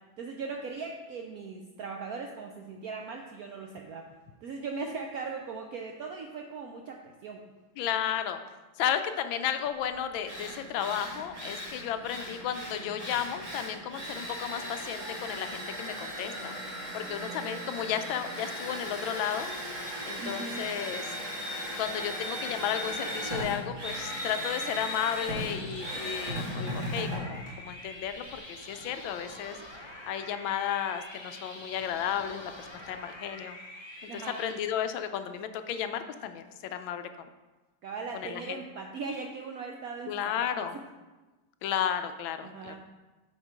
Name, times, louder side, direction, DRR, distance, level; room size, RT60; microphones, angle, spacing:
voice 1, 0.2-4.0 4.4-7.4 20.2-20.6 34.1-34.4 37.8-40.3 42.4-42.8, right 4 dB, 75° right, 2 dB, 0.8 m, -39 dB
voice 2, 7.8-8.4 8.8-16.5 16.9-19.5 20.1-21.0 21.8-29.6 30.0-33.6 34.1-37.3 38.1-38.6 40.1-40.7 41.6-42.8, left 9 dB, 80° left, 9 dB, 1.3 m, -33 dB
Drill, 9.8-9.9 10.2-28.4, equal, 55° right, 2.5 m, -37 dB
sound 1, 25.4-34.5, left 1 dB, 25° left, 0.6 m, -46 dB
8.0 x 4.4 x 4.8 m, 1.2 s
omnidirectional pair, 2.2 m